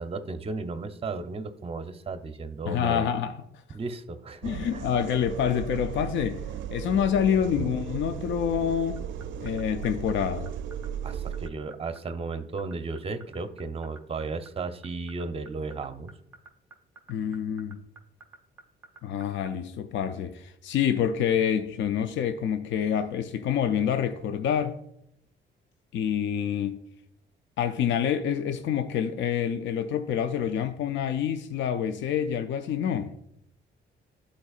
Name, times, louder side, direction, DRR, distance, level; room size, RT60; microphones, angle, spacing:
voice 1, 0.0-3.1 3.7-4.8 7.6-7.7 11.0-16.1, right 3 dB, 30° right, 0.7 m, -34 dB
voice 2, 2.6-3.4 4.4-6.4 6.7-9.1 9.4-10.5 17.1-17.8 19.0-24.8 25.9-26.8 27.6-33.1, left 8 dB, 70° left, 0.5 m, -27 dB
sound 1, 4.4-11.5, right 8 dB, 75° right, 0.4 m, -36 dB
sound 2, 9.0-19.5, right 4 dB, 5° right, 1.2 m, -48 dB
11.5 x 4.2 x 2.4 m
cardioid pair, 90°, 20 cm